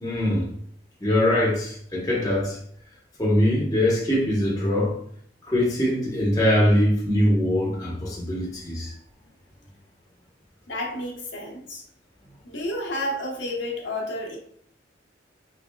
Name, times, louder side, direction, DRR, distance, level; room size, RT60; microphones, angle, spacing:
voice 1, 0.0-0.5 1.0-2.6 3.2-5.0 5.4-8.9, left 1 dB, 20° left, -5 dB, 0.8 m, -22 dB
voice 2, 10.7-11.8 12.4-14.4, left 1 dB, 80° left, -1 dB, 0.9 m, -31 dB
3.5 x 3.4 x 2.2 m, 0.63 s
head